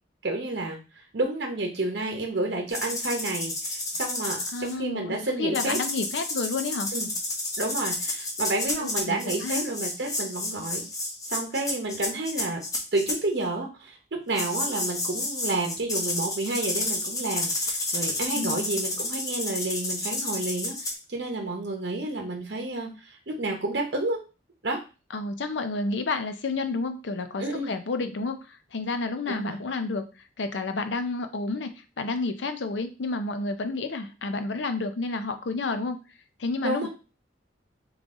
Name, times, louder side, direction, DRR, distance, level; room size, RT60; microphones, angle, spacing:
voice 1, 0.2-0.8 1.1-5.8 6.9-7.1 7.6-10.8 11.3-12.6 12.9-14.0 14.3-20.7 21.1-24.2 24.6-24.8 27.4-27.7 29.3-29.6 36.6-36.9, right 2 dB, 60° right, 2 dB, 0.8 m, -30 dB
sound 1, 2.7-4.7 5.5-13.2 14.4-20.9, left 2 dB, 20° left, 0.9 m, -31 dB
voice 2, 4.5-6.9 8.8-9.2 9.4-9.6 18.3-18.7 25.1-30.0 30.4-31.7 32.0-36.0 36.4-36.9, left 3 dB, 75° left, 8 dB, 0.6 m, -30 dB
3.9 x 3.2 x 3.6 m, 0.32 s
head